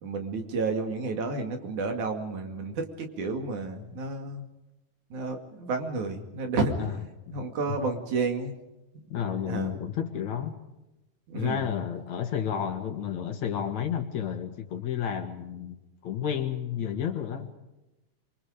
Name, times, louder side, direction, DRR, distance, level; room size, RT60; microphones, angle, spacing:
voice 1, 0.0-4.5 5.1-6.9 7.3-8.5 9.4-9.8 11.3-11.7, right 3 dB, 70° right, 5 dB, 3.8 m, -31 dB
voice 2, 9.1-10.6 11.3-15.8 16.0-17.5, left 8 dB, 65° left, 6 dB, 3.0 m, -31 dB
27.0 x 24.0 x 5.0 m, 0.98 s
omnidirectional pair, 3.6 m